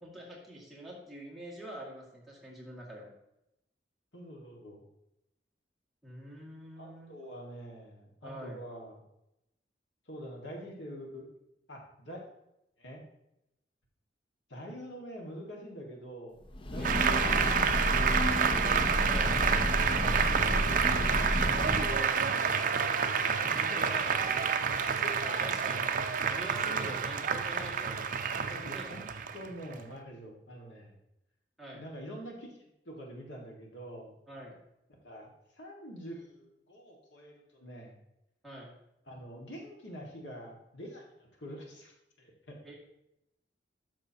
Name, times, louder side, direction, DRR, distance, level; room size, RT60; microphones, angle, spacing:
voice 1, 0.0-3.1 6.0-7.2 8.2-8.6 16.8-17.3 19.0-19.4 23.5-24.4 24.6-28.0 28.3-28.9 31.6-31.8 34.3-34.6 38.4-38.7 42.6-42.7, right 1 dB, ahead, -6 dB, 2.1 m, -45 dB
voice 2, 4.1-4.8 6.8-9.0 10.1-11.3 11.7-12.2 12.8-13.0 14.5-16.4 16.7-17.4 17.9-19.0 19.8-22.2 22.5-24.0 25.0-25.1 26.6-26.9 28.5-31.0 31.7-34.1 35.0-35.3 35.6-37.9 39.1-42.6, equal, 85° left, -1 dB, 1.8 m, -46 dB
Breathing / Train, 16.5-22.1, left 1 dB, 30° left, 0.5 m, -31 dB
Applause, 16.8-29.8, right 6 dB, 45° right, 0.5 m, -29 dB
12.0 x 6.0 x 2.9 m, 0.85 s
head